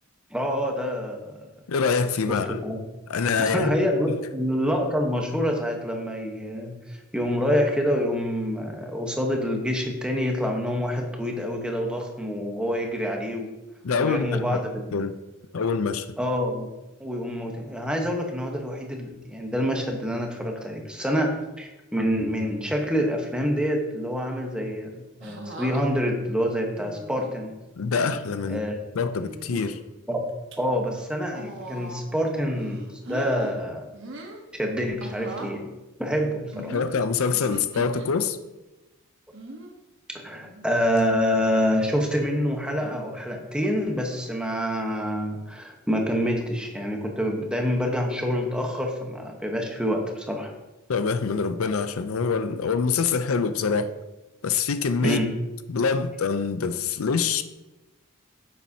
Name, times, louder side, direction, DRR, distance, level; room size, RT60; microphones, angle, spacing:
voice 1, 0.3-1.5 2.3-2.8 3.4-13.5 14.0-15.1 16.2-16.7 17.0-27.6 28.5-28.8 30.1-30.2 30.6-33.9 34.5-35.7 36.0-36.8 40.1-50.5 55.0-55.3, equal, 5° right, 1 dB, 1.1 m, -27 dB
voice 2, 1.7-2.6 3.1-3.7 4.1-4.2 13.8-14.6 14.9-15.2 15.5-16.1 27.8-28.6 28.9-29.8 36.7-38.4 50.9-53.9 54.4-55.2 55.7-57.4, left 5 dB, 75° left, 11 dB, 0.5 m, -25 dB
sound 1, 25.2-25.8 26.8-27.3 27.9-28.2 29.2-29.8 30.3-30.6 31.3-32.2 32.6-33.5 33.9-34.4 35.0-35.6 36.5-38.1 39.3-39.7 40.4-40.7 41.0-41.1 42.7-43.1 44.1-44.4, right 2 dB, 65° right, 1.2 m, -40 dB
9.6 x 7.3 x 2.8 m, 1.0 s
head